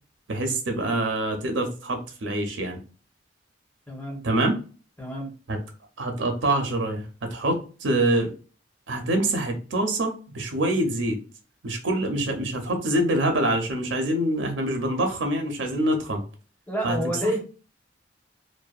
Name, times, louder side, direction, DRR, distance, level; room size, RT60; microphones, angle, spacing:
voice 1, 0.3-2.8 4.2-4.6 5.5-5.6 6.0-8.3 8.9-11.2 11.6-16.2 16.8-17.0, right 1 dB, 80° right, 4 dB, 0.6 m, -25 dB
voice 2, 3.9-4.2 5.0-5.3 16.7-17.4, equal, 10° left, -2 dB, 0.8 m, -28 dB
2.6 x 2.1 x 2.3 m, 0.37 s
head